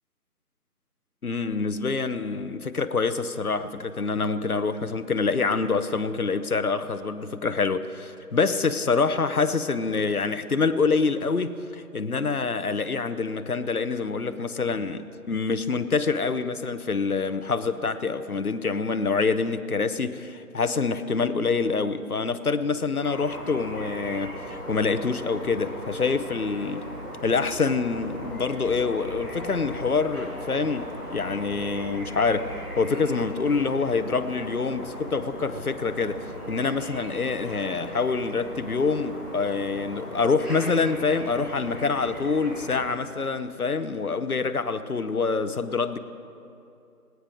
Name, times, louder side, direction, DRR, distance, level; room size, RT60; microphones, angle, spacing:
voice 1, 1.2-15.0 15.3-26.8 27.2-36.2 36.5-46.0, left 4 dB, 65° left, 11 dB, 0.9 m, -26 dB
sound 1, 23.0-42.9, equal, 15° right, 3.8 m, -38 dB
27.5 x 9.5 x 4.9 m, 2.7 s
figure-of-eight pair, 175°, 47 cm